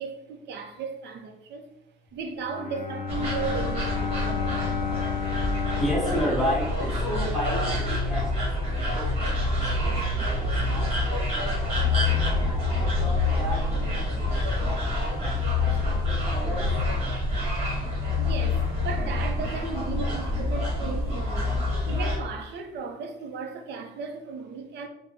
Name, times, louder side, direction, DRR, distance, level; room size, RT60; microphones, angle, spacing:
voice 1, 0.0-1.6 2.1-4.2 18.2-21.5 21.9-24.9, right 5 dB, 65° right, 0.6 m, -35 dB
Bowed string instrument, 2.4-7.3, left 7 dB, 50° left, 0.6 m, -32 dB
sound 1, 3.1-22.2, left 2 dB, 30° right, 1.3 m, -27 dB
voice 2, 5.8-16.7, equal, ahead, 1.2 m, -33 dB
3.4 x 2.1 x 3.7 m
cardioid pair, 135°, 19 cm